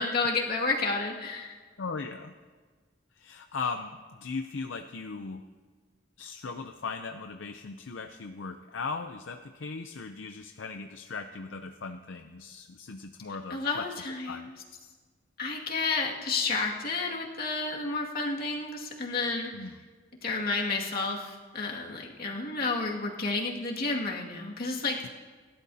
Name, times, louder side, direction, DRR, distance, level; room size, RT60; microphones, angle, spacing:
voice 1, 0.0-1.6 13.5-14.5 15.4-19.7 20.2-25.1, left 3 dB, 50° left, -1 dB, 2.1 m, -31 dB
voice 2, 1.8-2.3 3.2-5.4 6.2-13.9 14.3-14.5 19.5-19.7, left 4 dB, 75° left, 6 dB, 0.6 m, -38 dB
29.5 x 12.5 x 2.8 m, 1.5 s
head